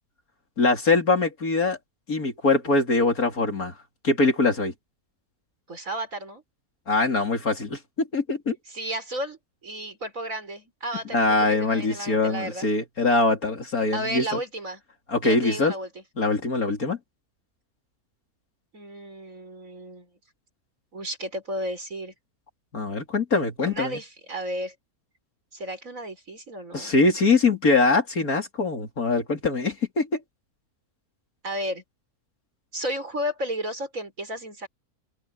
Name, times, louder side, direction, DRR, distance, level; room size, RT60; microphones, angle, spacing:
voice 1, 0.6-1.8 2.1-3.7 4.0-4.7 6.9-8.6 11.1-14.4 15.1-15.7 16.2-17.0 22.7-24.0 26.7-30.1, left 3 dB, 70° left, 3.9 m, -23 dB
voice 2, 5.7-6.4 8.7-12.7 13.9-14.8 15.2-16.0 18.7-20.1 20.9-22.1 23.6-24.7 25.5-26.9 31.4-31.8 32.7-34.7, right 1 dB, 60° right, 5.8 m, -33 dB
omnidirectional pair, 1.6 m